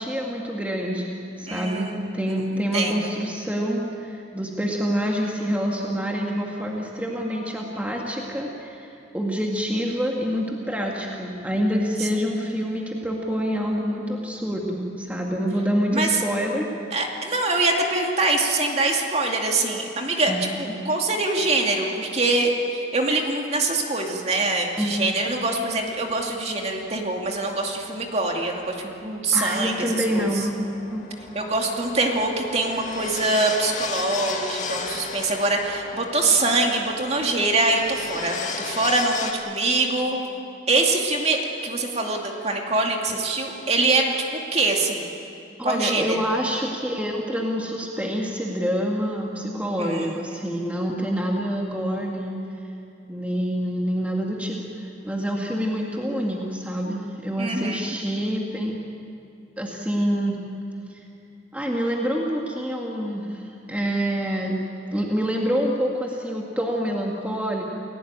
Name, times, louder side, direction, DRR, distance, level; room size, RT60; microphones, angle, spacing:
voice 1, 0.0-16.7 20.3-20.8 24.8-25.3 29.3-30.6 30.9-31.4 45.6-52.4 53.1-58.7 59.6-60.4 60.9-61.1 61.5-64.6 64.9-67.6, equal, 10° right, -1 dB, 1.9 m, -27 dB
voice 2, 1.5-2.2 2.7-3.1 12.0-12.3 15.9-16.2 16.9-30.5 31.3-40.2 40.7-44.1 44.3-45.1 45.6-46.2 49.8-50.4 57.4-58.0, right 2 dB, 35° right, 1 dB, 2.5 m, -24 dB
sound 1, 25.2-39.3, left 4 dB, 40° left, 2.3 m, -36 dB
29.0 x 17.0 x 9.0 m, 2.5 s
head